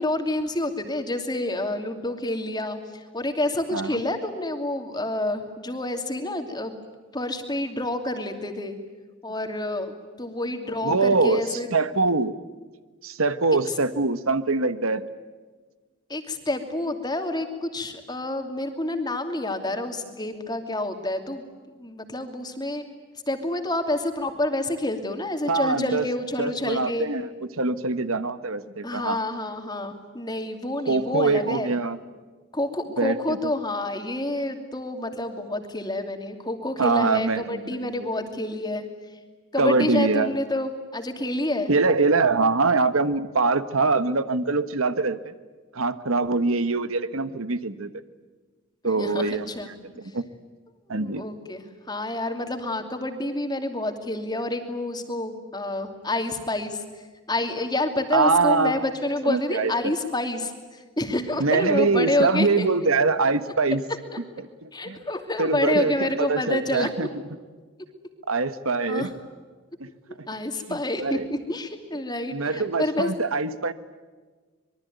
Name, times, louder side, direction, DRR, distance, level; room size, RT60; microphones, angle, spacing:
voice 1, 0.0-6.8 7.1-8.7 9.2-9.9 10.2-11.7 16.1-21.5 21.7-22.8 23.3-27.1 28.8-31.7 32.5-38.8 39.1-39.2 39.5-41.7 49.0-49.7 50.9-62.7 64.7-66.9 68.9-69.1 70.3-73.1, left 1 dB, 20° left, 5 dB, 2.7 m, -28 dB
voice 2, 10.8-12.3 13.0-15.0 25.5-26.1 26.4-27.3 27.5-29.2 30.9-32.0 33.0-33.2 36.8-37.9 39.6-40.3 41.7-45.3 45.7-47.9 48.8-50.2 50.9-51.2 58.1-58.9 59.2-59.9 61.4-63.8 64.6-65.0 65.4-67.1 68.3-69.1 69.8-69.9 70.7-71.3 72.3-73.7, right 3 dB, 80° right, 12 dB, 1.4 m, -23 dB
26.0 x 22.5 x 9.3 m, 1.4 s
head